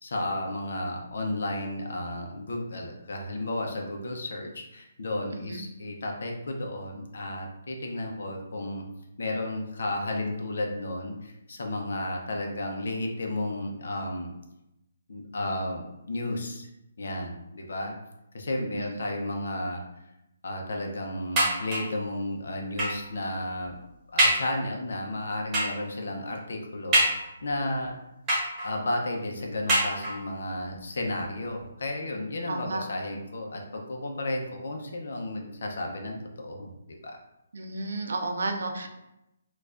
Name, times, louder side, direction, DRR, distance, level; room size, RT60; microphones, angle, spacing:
voice 1, 0.0-8.8 9.2-14.3 15.1-16.7 17.0-18.0 18.3-19.8 20.4-23.8 24.1-28.0 28.6-37.2, left 1 dB, 70° left, 2 dB, 0.7 m, -33 dB
voice 2, 5.3-5.6 18.7-18.9 32.5-32.8 37.5-38.9, right 2 dB, 80° right, 5 dB, 0.6 m, -32 dB
sound 1, 21.4-22.0 22.8-23.1 23.6-23.7 24.2-24.6 25.5-25.9 26.9-27.6 28.3-28.9 29.7-30.4 31.2-31.3 31.6-31.7, right 1 dB, 15° right, 1.1 m, -26 dB
4.5 x 2.4 x 2.5 m, 0.88 s
hypercardioid pair, 165°, 0 cm